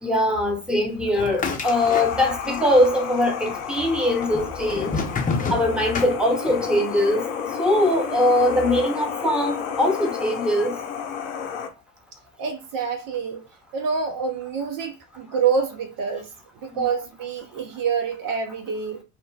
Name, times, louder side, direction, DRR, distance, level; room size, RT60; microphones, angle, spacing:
voice 1, 0.0-5.0 5.5-10.8 16.7-16.8, left 1 dB, ahead, 1.1 m, -22 dB
sound 1, 1.1-2.6 2.8-3.6 4.2-6.7, left 4 dB, 20° left, 0.7 m, -29 dB
sound 2, 1.6-11.7, left 7 dB, 80° left, 0.7 m, -31 dB
voice 2, 12.4-13.5 13.7-16.3 16.6-19.0, right 6 dB, 55° right, 0.7 m, -26 dB
2.5 x 2.1 x 3.2 m
hypercardioid pair, 70°, 40 cm